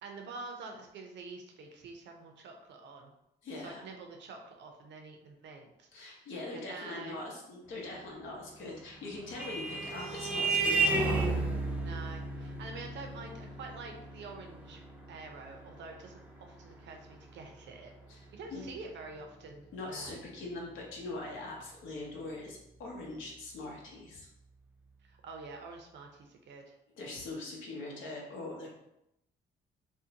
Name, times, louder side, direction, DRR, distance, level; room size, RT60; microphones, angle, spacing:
voice 1, 0.0-3.1 3.6-6.3 6.5-7.2 11.8-14.8 15.1-17.9 18.3-20.2 25.0-26.7, right 3 dB, 65° right, 3 dB, 0.5 m, -47 dB
voice 2, 3.4-3.8 5.9-11.1 18.1-18.6 19.7-24.3 27.0-28.7, left 2 dB, 80° left, -2 dB, 0.8 m, -42 dB
Vehicle horn car horn honking, 8.8-17.8, right 3 dB, 5° right, 0.4 m, -34 dB
2.6 x 2.0 x 2.7 m, 0.85 s
cardioid pair, 90°, 20 cm